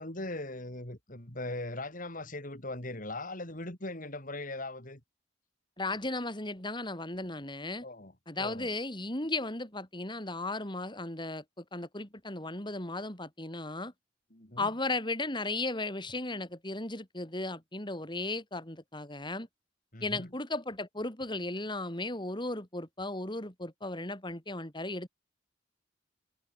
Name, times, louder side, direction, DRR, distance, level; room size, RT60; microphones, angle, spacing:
voice 1, 0.0-5.0 7.8-8.7 14.3-14.7 19.9-20.3, left 2 dB, 45° left, 5.3 m, -40 dB
voice 2, 5.8-7.8 8.3-13.9 14.6-19.5 20.0-25.1, left 2 dB, 25° left, 5.3 m, -36 dB
head